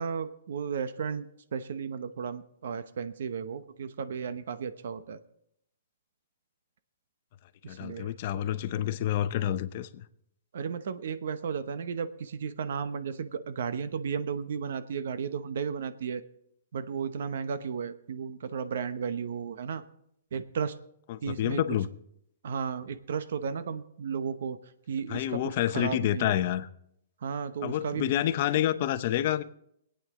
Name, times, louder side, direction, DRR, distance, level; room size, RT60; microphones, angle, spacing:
voice 1, 0.0-5.2 7.6-8.1 10.5-16.2 16.7-19.8 20.3-20.7 21.2-21.6 22.4-24.6 24.9-25.4 25.7-26.3 27.2-28.1, right 6 dB, 65° right, 12 dB, 0.9 m, -34 dB
voice 2, 7.7-9.9 21.1-21.9 25.1-26.7 27.6-29.4, left 12 dB, 40° left, 11 dB, 0.7 m, -28 dB
22.5 x 9.0 x 3.7 m, 0.75 s
hypercardioid pair, 165°, 0 cm